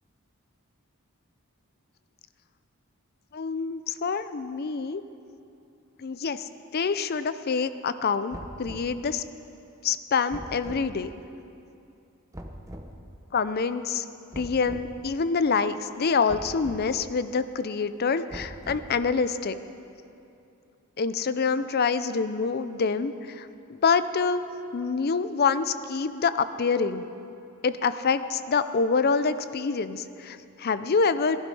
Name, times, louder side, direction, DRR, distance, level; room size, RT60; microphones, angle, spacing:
voice 1, 3.3-5.0 6.0-9.2 9.8-11.1 13.3-14.0 14.4-19.6 21.0-23.5 23.8-24.4 24.7-27.0 27.6-31.4, left 5 dB, 45° left, 13 dB, 0.5 m, -26 dB
sound 1, 8.3-9.0 10.3-10.9 12.3-12.9 14.3-14.9 16.3-16.9 18.3-19.0, equal, 15° right, 0.9 m, -41 dB
18.0 x 12.0 x 5.4 m, 2.7 s
head